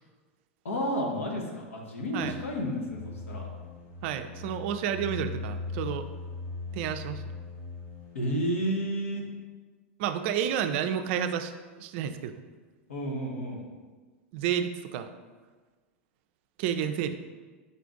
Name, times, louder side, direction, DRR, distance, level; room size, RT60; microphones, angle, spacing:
voice 1, 0.6-3.5 8.1-9.3 12.9-13.6, equal, 85° left, 0 dB, 0.8 m, -31 dB
sound 1, 2.2-8.1, left 3 dB, 60° left, 1.2 m, -39 dB
voice 2, 4.0-6.1 6.7-7.2 10.0-11.5 11.8-12.3 14.3-15.1 16.6-17.1, right 9 dB, 60° right, 9 dB, 0.3 m, -30 dB
5.3 x 2.4 x 3.8 m, 1.4 s
hypercardioid pair, 100°, 7 cm